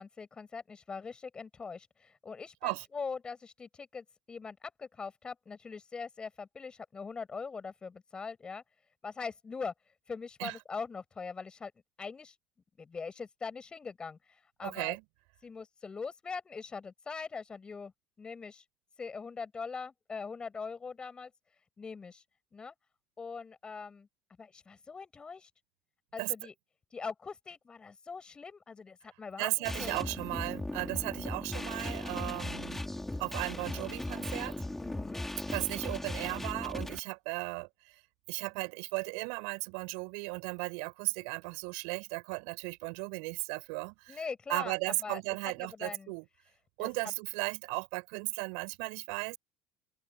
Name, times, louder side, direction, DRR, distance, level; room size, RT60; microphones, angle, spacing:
voice 1, 0.0-8.6 9.0-9.7 10.1-11.7 12.0-12.4 12.8-15.0 15.4-17.9 18.2-18.6 19.0-21.3 21.8-22.2 22.5-22.7 23.2-24.1 24.4-25.5 26.1-26.5 26.9-30.0 34.8-35.3 44.1-44.7 45.0-45.2 45.6-46.1 46.8-46.9, left 5 dB, 25° left, 7.4 m, -42 dB
voice 2, 14.6-15.0 26.2-26.3 29.4-32.8 33.2-34.5 35.5-38.0 38.3-44.2 44.5-46.2 46.8-49.4, right 39 dB, 70° right, 6.3 m, -36 dB
sound 1, 29.6-37.0, left 1 dB, 10° left, 3.7 m, -38 dB
open air
hypercardioid pair, 65°, 3 cm